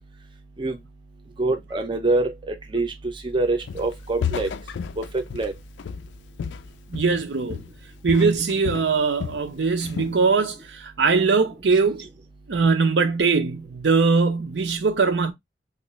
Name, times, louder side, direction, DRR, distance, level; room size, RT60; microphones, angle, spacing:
voice 1, 1.4-2.9 3.2-4.5 5.0-5.5, right 2 dB, 30° right, 0.5 m, -25 dB
Walk footsteps, 3.7-7.2 7.5-7.8 8.1-9.5 9.8-10.2, left 7 dB, 90° left, 0.3 m, -32 dB
voice 2, 6.9-7.6 8.0-12.1 12.5-15.3, right 4 dB, 75° right, 0.6 m, -21 dB
3.1 x 2.5 x 3.0 m
head